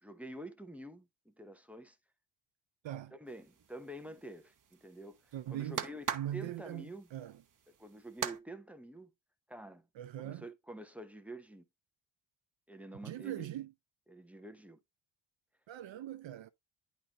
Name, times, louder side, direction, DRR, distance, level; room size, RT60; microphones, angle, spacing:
voice 1, 0.0-2.0 3.1-7.1 7.8-9.1 9.5-9.9 10.2-11.6 12.7-13.5 14.1-14.8, right 1 dB, 5° right, 0.8 m, -48 dB
sound 1, 3.3-8.4, right 8 dB, 40° right, 1.0 m, -42 dB
voice 2, 5.3-5.8 6.1-7.4 10.0-10.4 13.0-13.7 15.7-16.5, right 12 dB, 65° right, 0.6 m, -41 dB
10.5 x 3.8 x 2.9 m
wide cardioid pair, 120°, 48 cm